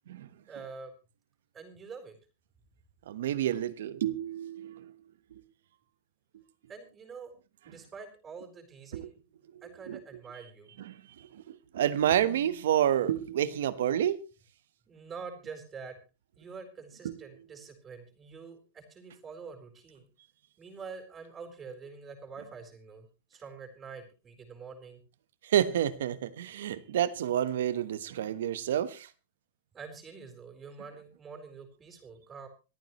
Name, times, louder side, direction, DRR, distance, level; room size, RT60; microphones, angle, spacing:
voice 1, 0.5-0.9 1.5-2.2 6.7-7.3 7.6-9.1 9.6-10.7 14.9-16.0 16.4-20.1 20.6-25.0 29.7-32.5, right 5 dB, 25° right, 4.2 m, -46 dB
voice 2, 3.1-4.9 8.9-9.1 9.9-10.0 10.9-11.0 11.3-14.1 17.0-17.2 25.4-29.1, right 10 dB, 80° right, 1.2 m, -29 dB
26.0 x 9.3 x 3.1 m
hypercardioid pair, 125°, 0 cm